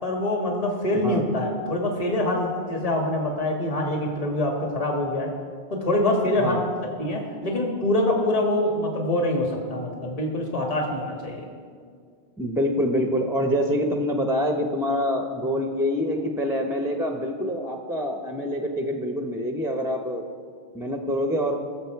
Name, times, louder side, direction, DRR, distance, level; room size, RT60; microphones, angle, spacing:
voice 1, 0.0-5.3 5.7-6.6 7.0-11.5, left 1 dB, 35° left, 1 dB, 1.6 m, -25 dB
voice 2, 12.4-20.2 20.7-21.6, equal, 5° right, 3 dB, 0.7 m, -26 dB
20.0 x 7.1 x 4.6 m, 2.1 s
omnidirectional pair, 1.1 m